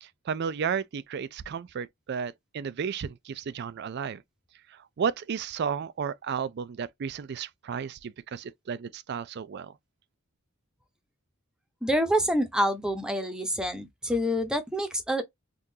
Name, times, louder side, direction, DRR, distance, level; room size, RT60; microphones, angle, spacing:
voice 1, 0.0-4.2 4.7-9.7, right 6 dB, 50° right, 0.4 m, -33 dB
voice 2, 11.8-15.2, equal, 5° right, 0.7 m, -27 dB
3.7 x 2.4 x 2.7 m
head